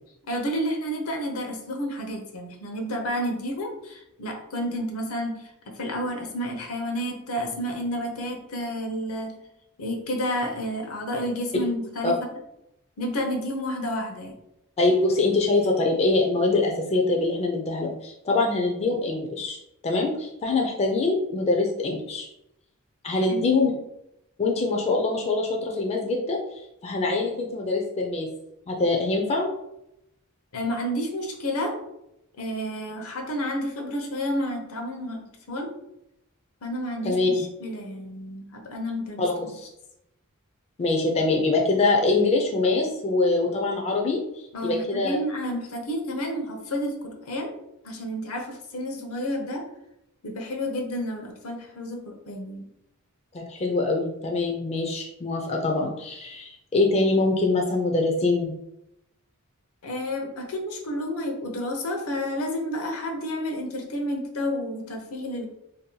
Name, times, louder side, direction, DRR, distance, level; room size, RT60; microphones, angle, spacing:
voice 1, 0.3-9.4 9.8-12.3 13.0-14.3 23.1-23.4 30.5-31.8 32.4-35.7 36.6-39.3 44.5-47.5 47.8-49.6 50.2-52.6 59.8-65.5, equal, 70° left, 3 dB, 0.6 m, -30 dB
voice 2, 14.8-19.6 19.8-22.3 23.0-23.7 24.4-26.4 26.8-28.3 28.7-29.5 37.0-37.4 39.2-39.6 40.8-44.2 44.6-45.2 53.3-58.5, left 3 dB, 30° left, 0 dB, 0.4 m, -24 dB
2.6 x 2.2 x 3.8 m, 0.82 s
head